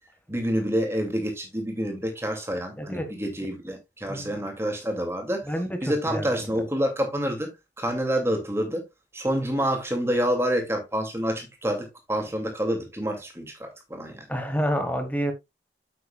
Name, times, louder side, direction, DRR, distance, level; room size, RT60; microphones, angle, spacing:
voice 1, 0.3-5.5 5.8-8.8 9.1-14.2, equal, 15° right, 2.5 m, -28 dB
voice 2, 2.8-3.1 4.1-4.3 5.5-5.8 6.1-6.3 14.3-15.3, equal, 10° left, 1.6 m, -28 dB
8.7 x 8.1 x 2.4 m
head